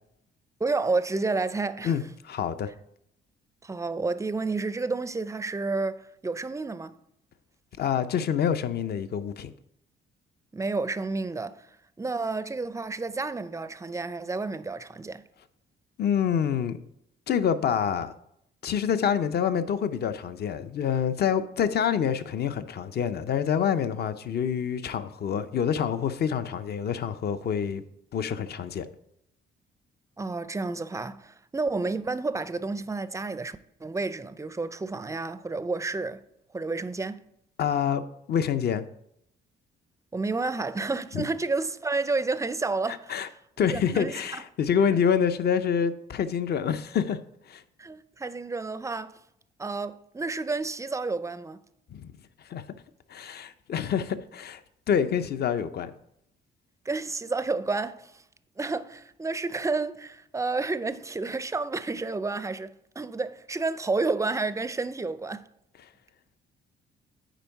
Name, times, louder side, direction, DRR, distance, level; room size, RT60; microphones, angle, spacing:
voice 1, 0.6-1.9 3.6-7.0 10.5-11.7 12.0-15.2 30.2-36.2 36.5-37.2 40.1-43.2 43.7-44.4 47.8-49.2 49.6-51.6 56.9-58.2 58.6-65.5, right 3 dB, 15° right, 0.4 m, -30 dB
voice 2, 1.8-2.7 7.8-9.5 16.0-16.8 17.3-18.1 18.6-27.8 28.1-28.9 37.6-38.0 38.3-38.9 41.1-41.3 42.9-43.3 43.6-47.2 47.5-47.6 51.9-52.1 52.4-52.6 53.1-54.6 54.9-55.9, left 8 dB, 55° left, 0.6 m, -27 dB
9.0 x 4.6 x 4.6 m
cardioid pair, 90°, 20 cm